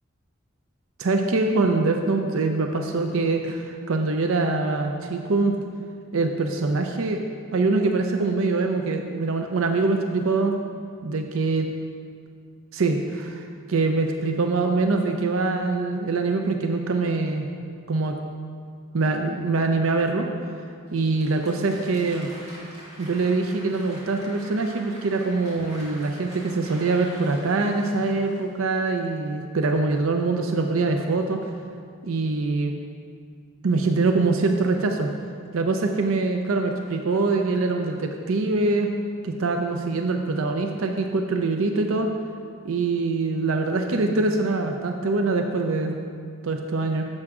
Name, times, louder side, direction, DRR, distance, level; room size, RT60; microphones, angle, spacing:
voice 1, 1.0-5.5 6.1-7.2 7.5-10.6 11.0-11.6 12.7-13.4 13.7-17.5 17.9-18.1 18.9-20.3 20.9-22.3 23.0-31.5 32.0-32.7 33.6-35.1 35.5-38.9 39.2-42.1 42.6-46.0 46.4-47.0, right 3 dB, 90° right, 4 dB, 0.6 m, -24 dB
Applause, 20.9-29.0, equal, 35° right, 2.5 m, -45 dB
10.5 x 7.7 x 3.7 m, 2.3 s
head